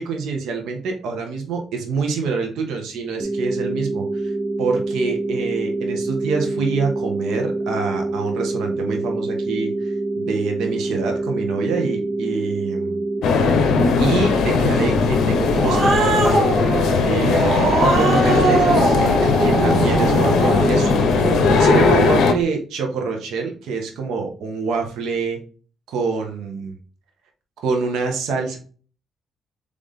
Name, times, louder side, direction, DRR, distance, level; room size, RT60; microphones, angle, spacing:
voice 1, 0.0-4.3 4.6-13.0 14.0-16.5 17.0-25.4 25.9-26.7 27.6-28.6, right 4 dB, 80° right, 3 dB, 1.1 m, -26 dB
sound 1, 3.2-13.2, right 2 dB, 20° right, 0.9 m, -26 dB
sound 2, 13.2-22.3, left 4 dB, 75° left, 0.7 m, -18 dB
Growling, 15.2-22.0, right 3 dB, 55° right, 1.3 m, -21 dB
4.0 x 3.4 x 3.4 m, 0.39 s
cardioid pair, 90°, 0 cm